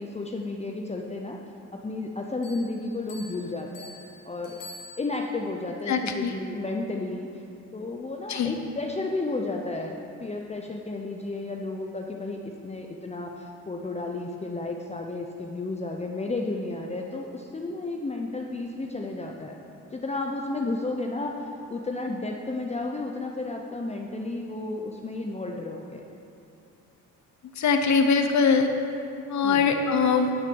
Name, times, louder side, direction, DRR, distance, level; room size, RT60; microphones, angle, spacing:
voice 1, 0.0-1.4 1.7-3.9 4.2-4.6 5.0-7.4 7.7-19.6 19.9-26.0 29.4-29.7, left 2 dB, 20° left, 1 dB, 0.7 m, -32 dB
sound 1, 2.4-5.5, left 2 dB, 75° left, 2.4 m, -47 dB
voice 2, 5.9-6.3 8.3-8.5 27.6-28.7 29.3-30.3, left 5 dB, 55° left, 6 dB, 1.0 m, -22 dB
10.5 x 6.4 x 5.4 m, 2.6 s
supercardioid pair, 70°, 34 cm